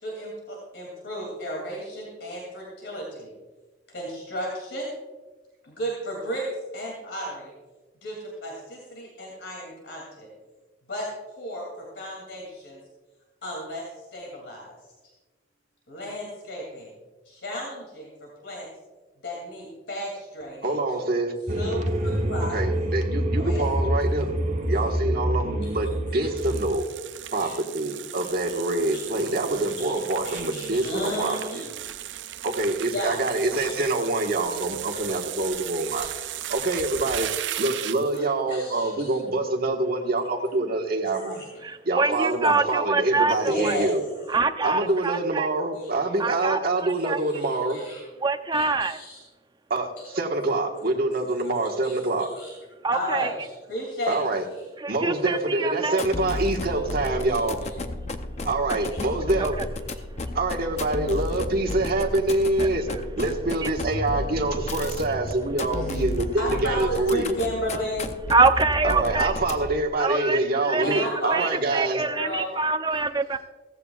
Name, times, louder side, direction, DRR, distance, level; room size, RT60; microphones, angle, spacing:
voice 1, 0.0-3.3 3.9-4.9 5.6-6.5 6.7-7.5 8.0-10.3 10.9-11.1 11.4-12.8 13.4-13.8 14.1-14.7 15.0-15.1 15.9-16.9 17.2-18.7 19.2-20.7 21.5-22.6 23.3-23.7 25.6-25.7 26.4-26.5 27.3-27.5 28.4-28.6 28.9-29.9 30.2-31.7 32.9-33.8 35.1-35.2 36.0-36.3 38.1-39.2 41.1-41.5 43.3-44.0 45.8-46.0 46.9-48.0 48.5-49.2 50.0-50.1 51.8-52.5 52.9-54.4 57.3-57.4 58.9-59.1 65.7-66.0 66.4-68.1 70.8-71.5 71.8-72.6, equal, 75° left, -2 dB, 2.8 m, -34 dB
voice 2, 20.6-21.3 22.5-26.9 27.3-31.6 32.4-36.1 36.5-37.3 37.6-41.5 41.8-44.0 44.6-47.9 49.7-52.3 54.1-54.4 54.9-57.8 58.4-59.6 60.3-62.9 63.2-67.4 68.8-72.1, right 2 dB, 55° right, 2 dB, 1.5 m, -26 dB
sound 1, 21.5-26.7, right 1 dB, 40° right, 1.2 m, -26 dB
sound 2, 26.4-38.2, right 12 dB, 85° right, 0.5 m, -36 dB
voice 3, 41.6-43.8 44.3-45.5 46.2-47.2 48.2-49.0 52.8-53.3 54.8-56.0 58.7-58.8 59.4-59.5 62.6-63.0 68.3-69.4 70.0-73.4, right 3 dB, 25° right, 9 dB, 0.6 m, -25 dB
sound 3, 55.9-69.9, left 2 dB, 40° left, 0.7 m, -33 dB
16.5 x 15.0 x 2.4 m, 1.2 s
head